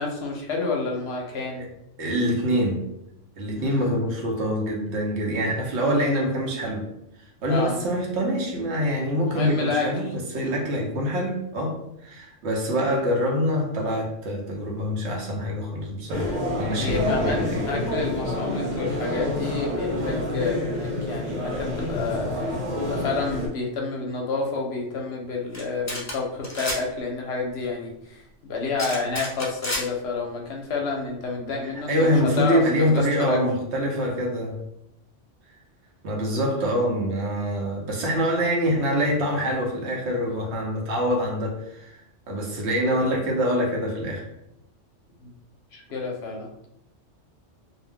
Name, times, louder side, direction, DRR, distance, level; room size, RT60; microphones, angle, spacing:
voice 1, 0.0-1.7 3.5-3.9 7.5-7.8 9.3-10.1 10.6-10.8 16.8-33.4 45.2-45.3 45.7-46.5, left 4 dB, 65° left, 0 dB, 0.8 m, -29 dB
voice 2, 2.0-2.9 3.4-6.9 7.4-17.6 31.9-34.6 36.0-44.3, equal, 70° right, -1 dB, 1.0 m, -25 dB
sound 1, 16.1-23.5, left 1 dB, 45° right, 0.9 m, -28 dB
sound 2, 25.5-25.6 25.9-26.1 26.4-26.8 28.8-29.8, left 1 dB, 25° left, 0.3 m, -29 dB
2.6 x 2.0 x 3.4 m, 0.81 s
omnidirectional pair, 1.2 m